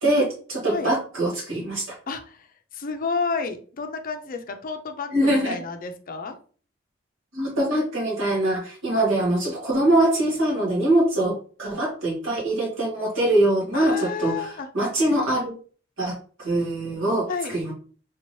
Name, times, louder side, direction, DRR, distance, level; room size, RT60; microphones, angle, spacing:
voice 1, 0.0-1.9 5.1-5.6 7.3-15.5 16.0-16.1 16.4-17.7, right 1 dB, 80° right, -3 dB, 1.7 m, -23 dB
voice 2, 2.1-2.5 2.7-6.4 13.7-14.7 17.3-17.6, left 4 dB, 45° left, 7 dB, 0.5 m, -30 dB
3.4 x 2.8 x 3.0 m, 0.42 s
head